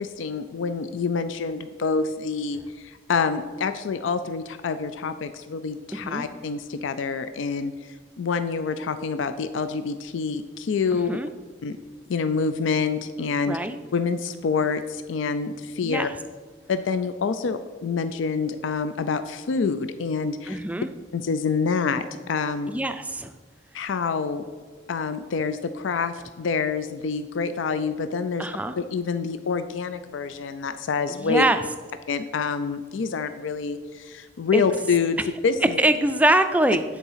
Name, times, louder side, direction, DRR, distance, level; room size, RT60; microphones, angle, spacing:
voice 1, 0.0-7.7 8.2-11.2 11.6-11.8 12.1-13.6 13.9-16.1 16.7-20.6 21.1-22.7 23.7-24.4 24.9-28.5 28.8-31.4 32.1-35.8, left 5 dB, 85° left, 11 dB, 0.4 m, -27 dB
voice 2, 5.9-6.3 11.1-11.3 13.5-13.8 15.8-16.1 20.5-20.9 22.7-23.3 28.4-28.7 31.1-31.6 34.5-34.6 35.8-36.8, right 1 dB, 10° right, 9 dB, 0.3 m, -23 dB
9.5 x 4.1 x 5.6 m, 1.4 s
head